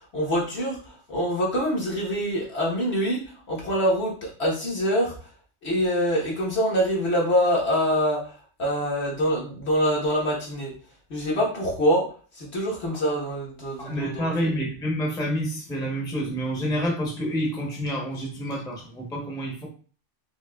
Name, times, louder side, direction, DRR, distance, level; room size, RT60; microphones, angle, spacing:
voice 1, 0.0-5.3 5.6-10.7 11.1-12.0 12.3-14.6, equal, 65° left, -3 dB, 1.5 m, -25 dB
voice 2, 13.8-19.7, equal, 5° left, -2 dB, 0.8 m, -28 dB
4.8 x 2.8 x 2.3 m, 0.40 s
omnidirectional pair, 1.2 m